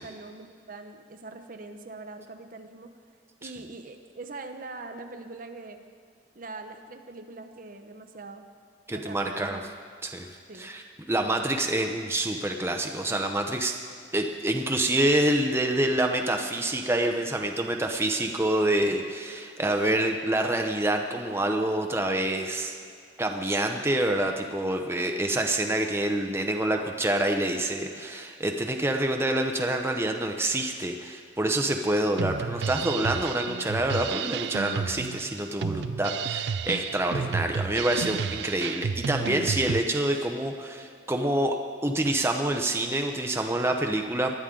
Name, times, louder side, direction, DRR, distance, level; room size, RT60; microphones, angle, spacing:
voice 1, 0.0-2.9 3.4-5.8 6.3-8.5 8.9-9.6 10.5-10.7, right 3 dB, 45° right, 6 dB, 0.8 m, -42 dB
voice 2, 8.9-9.6 10.0-10.3 10.6-13.7 14.1-22.8 23.2-41.6 41.8-44.3, right 1 dB, 15° right, 3 dB, 0.7 m, -27 dB
Drum kit, 32.2-39.8, right 6 dB, 60° right, 0.3 m, -31 dB
19.5 x 11.5 x 3.8 m, 2.3 s
head